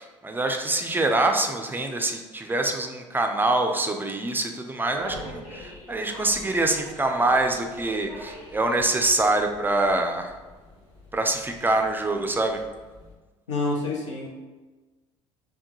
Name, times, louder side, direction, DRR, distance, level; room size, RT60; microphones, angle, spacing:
voice 1, 0.0-10.3 11.1-12.6, right 2 dB, 15° right, 4 dB, 0.4 m, -25 dB
sound 1, 4.8-13.1, equal, 55° left, 1.4 m, -44 dB
voice 2, 13.5-14.3, left 2 dB, 85° left, -2 dB, 0.7 m, -27 dB
3.5 x 2.2 x 2.9 m, 1.2 s
hypercardioid pair, 65°, 15 cm